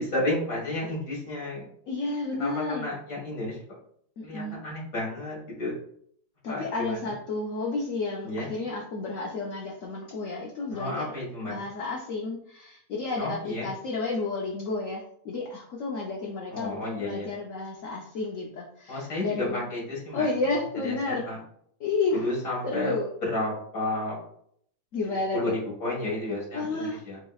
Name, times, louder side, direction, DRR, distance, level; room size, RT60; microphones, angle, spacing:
voice 1, 0.0-1.7 2.4-3.6 4.2-5.7 6.5-7.0 8.2-8.5 10.7-11.5 13.2-13.7 16.5-17.3 18.9-20.3 20.8-21.4 22.1-23.0 23.2-24.2 25.3-27.2, left 1 dB, 45° left, -4 dB, 2.0 m, -31 dB
voice 2, 1.9-2.9 4.2-4.6 6.4-11.1 11.4-19.7 20.1-21.3 21.8-22.3 22.6-23.1 24.9-25.5 26.5-27.0, left 3 dB, 70° left, -2 dB, 0.7 m, -31 dB
7.1 x 2.9 x 2.3 m, 0.66 s
omnidirectional pair, 2.2 m